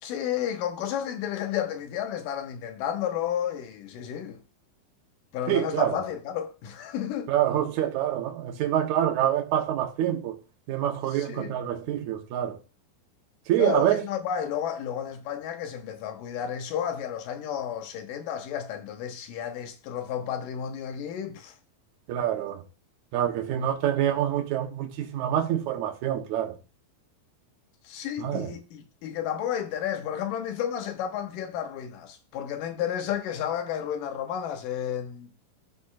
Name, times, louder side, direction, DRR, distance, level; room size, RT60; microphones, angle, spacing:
voice 1, 0.0-4.4 5.3-7.3 11.1-11.5 13.6-21.6 27.8-35.3, left 9 dB, 70° left, 2.6 m, -32 dB
voice 2, 5.5-6.0 7.3-10.4 10.7-12.6 13.5-14.0 22.1-22.6 23.1-26.6 28.2-28.5, right 11 dB, 65° right, 2.2 m, -26 dB
13.0 x 5.2 x 2.5 m
omnidirectional pair, 4.4 m